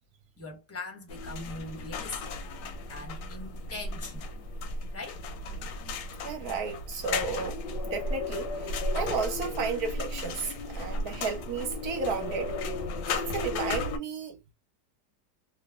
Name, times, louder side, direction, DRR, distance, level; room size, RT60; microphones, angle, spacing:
voice 1, 0.4-2.4 2.9-4.3 4.9-5.2, left 2 dB, 15° left, 0.5 m, -41 dB
sound 1, 1.1-14.0, left 2 dB, 85° left, 1.3 m, -34 dB
voice 2, 6.2-7.6 7.9-12.6 13.1-14.4, right 5 dB, 65° right, 1.0 m, -33 dB
3.0 x 2.1 x 2.2 m
omnidirectional pair, 1.9 m